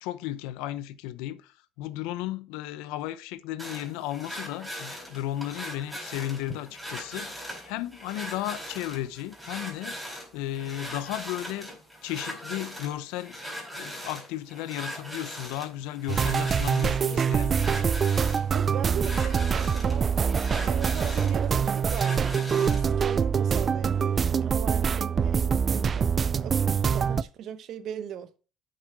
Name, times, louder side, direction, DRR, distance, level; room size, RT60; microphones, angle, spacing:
voice 1, 0.0-11.7 12.0-13.4 13.8-17.7, left 13 dB, 90° left, 0.7 m, -34 dB
sound 1, 3.6-22.9, equal, 5° right, 4.5 m, -40 dB
sound 2, 16.1-27.2, right 6 dB, 35° right, 0.4 m, -25 dB
voice 2, 17.0-17.4 18.5-26.1 26.4-28.4, right 9 dB, 60° right, 1.0 m, -39 dB
8.5 x 6.4 x 4.8 m
cardioid pair, 105°, 0 cm